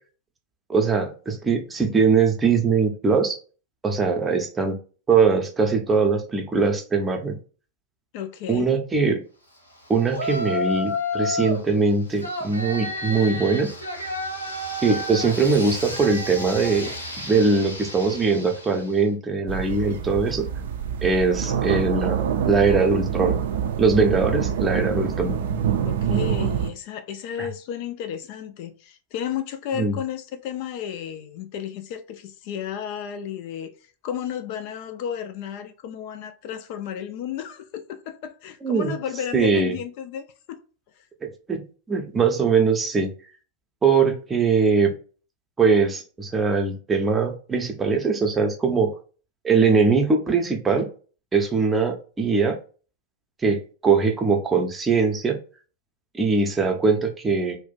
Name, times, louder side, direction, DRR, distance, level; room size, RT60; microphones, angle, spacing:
voice 1, 0.7-3.4 3.8-4.8 5.1-7.4 8.5-9.2 9.9-13.7 14.8-20.5 21.0-23.4 23.8-25.4 27.4-27.5 29.7-30.0 38.6-38.9 39.3-39.8 41.5-41.6 41.9-43.1 43.8-44.9 45.6-48.9 49.4-50.9 51.3-52.6 53.4-55.4 56.1-57.6, right 4 dB, 15° right, 0.6 m, -21 dB
voice 2, 8.1-8.7 25.9-33.7 34.0-40.6 41.0-41.1, left 9 dB, 45° left, 0.3 m, -33 dB
Yell, 10.1-11.7 12.2-18.9, left 1 dB, 85° left, 0.8 m, -31 dB
sound 1, 19.5-26.7, right 8 dB, 55° right, 0.4 m, -26 dB
2.4 x 2.1 x 3.9 m
figure-of-eight pair, 90°, 0 cm